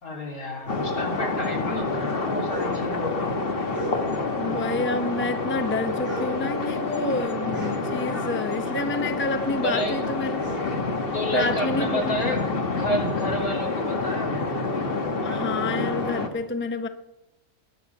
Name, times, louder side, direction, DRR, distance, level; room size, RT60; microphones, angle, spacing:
voice 1, 0.0-3.3 9.6-10.0 11.1-14.3, equal, 85° left, 0 dB, 4.0 m, -30 dB
sound 1, 0.6-4.4 4.7-8.5 8.8-12.0, right 2 dB, 55° right, 8.2 m, -40 dB
sound 2, 0.7-16.3, left 3 dB, 40° left, 1.5 m, -28 dB
voice 2, 4.4-10.4 11.3-12.3 15.2-16.9, left 2 dB, 10° left, 8 dB, 0.7 m, -29 dB
19.5 x 10.5 x 6.0 m, 0.97 s
omnidirectional pair, 1.5 m